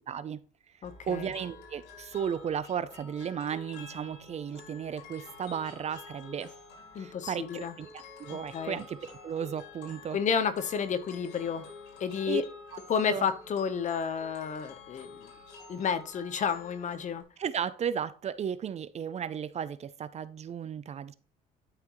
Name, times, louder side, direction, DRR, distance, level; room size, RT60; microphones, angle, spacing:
voice 1, 0.1-0.4 1.1-6.5 7.0-10.2 12.3-12.4 13.1-13.3 17.4-21.1, right 8 dB, 40° right, 0.6 m, -35 dB
sound 1, 0.8-17.2, left 4 dB, 75° left, 3.8 m, -49 dB
voice 2, 0.8-1.3 6.9-7.8 8.5-8.8 10.1-11.7 12.0-12.4 12.9-15.3 15.7-17.2, left 6 dB, 45° left, 1.0 m, -31 dB
12.0 x 6.0 x 3.1 m
cardioid pair, 110°, 17 cm